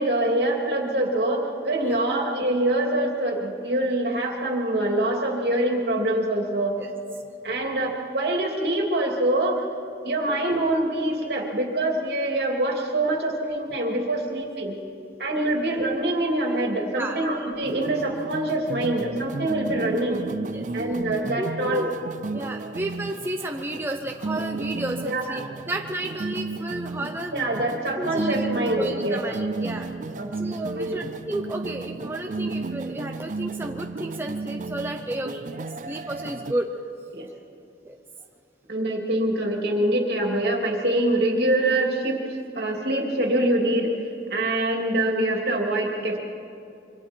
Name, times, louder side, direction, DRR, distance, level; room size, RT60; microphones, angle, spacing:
voice 1, 0.0-6.8 7.4-9.6 10.0-14.8 15.2-20.2 20.7-21.9 25.0-25.4 27.3-29.2 30.2-30.3 30.7-31.0 37.1-37.3 38.7-43.9 44.3-46.2, right 1 dB, 65° right, 0 dB, 2.9 m, -25 dB
sound 1, 17.6-36.5, right 3 dB, 45° right, 0.4 m, -33 dB
voice 2, 21.4-21.9 22.3-27.5 28.0-29.9 30.4-36.7 37.8-38.0, right 1 dB, 15° right, 2 dB, 0.8 m, -32 dB
26.0 x 24.0 x 4.6 m, 2.5 s
head